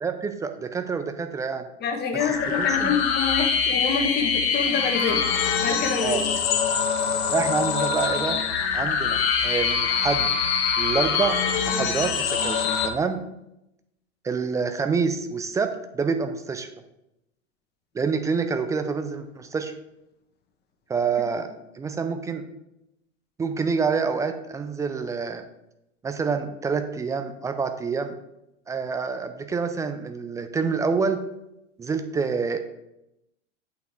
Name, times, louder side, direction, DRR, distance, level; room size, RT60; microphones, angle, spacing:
voice 1, 0.0-1.7 2.2-2.9 6.0-6.2 7.3-8.4 8.7-10.3 10.8-11.4 11.7-13.2 14.2-16.7 17.9-19.7 20.9-21.5 21.7-22.4 23.4-25.4 26.0-28.1 28.7-31.2 31.8-32.6, right 5 dB, 10° right, 8 dB, 0.3 m, -27 dB
voice 2, 1.8-5.2 5.6-6.2, left 5 dB, 25° left, 3 dB, 1.3 m, -26 dB
sound 1, 2.2-12.9, left 6 dB, 55° left, 1.3 m, -24 dB
8.3 x 4.5 x 4.4 m, 0.85 s
hypercardioid pair, 95°, 38 cm